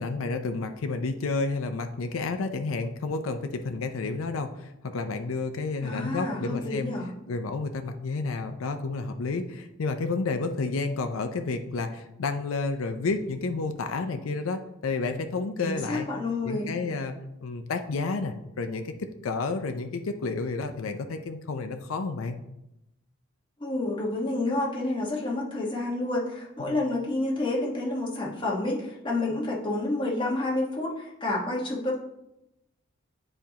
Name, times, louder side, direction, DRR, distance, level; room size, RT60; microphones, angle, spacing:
voice 1, 0.0-6.9 7.3-16.1 16.4-22.4 26.6-26.8, left 3 dB, 85° left, 7 dB, 0.5 m, -31 dB
voice 2, 5.8-7.1 15.6-16.7 23.6-32.0, left 2 dB, 25° left, -3 dB, 1.3 m, -29 dB
9.3 x 4.3 x 2.9 m, 0.87 s
head